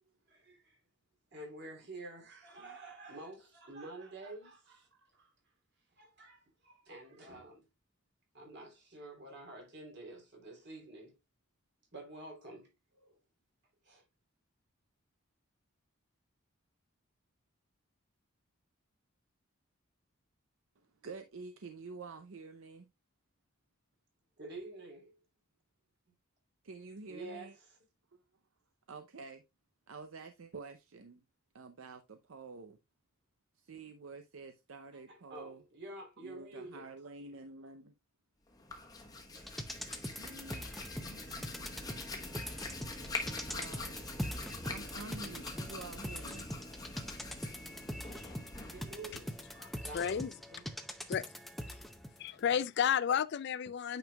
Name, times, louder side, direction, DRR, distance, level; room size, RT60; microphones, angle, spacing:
voice 1, 0.3-0.8 1.3-5.3 6.0-7.7 8.3-11.2 11.9-13.2 13.8-14.0 24.4-25.2 27.1-27.8 34.9-36.9 48.7-49.3 49.8-50.7 51.0-51.1, right 2 dB, 50° right, 3.2 m, -49 dB
voice 2, 20.8-22.9 26.6-27.5 28.1-28.2 28.9-29.4 29.9-31.2 31.5-32.8 33.5-35.6 36.2-37.9 40.2-40.7 41.0-42.1 43.5-44.0 44.6-46.5, right 4 dB, 65° right, 0.6 m, -49 dB
Hands, 38.5-49.9, left 2 dB, 15° left, 1.0 m, -44 dB
sound 1, 39.3-52.2 52.5-52.6, equal, ahead, 0.6 m, -43 dB
voice 3, 49.6-50.3 51.1-51.3 52.2-54.0, left 8 dB, 50° left, 0.3 m, -32 dB
8.9 x 5.3 x 2.3 m
head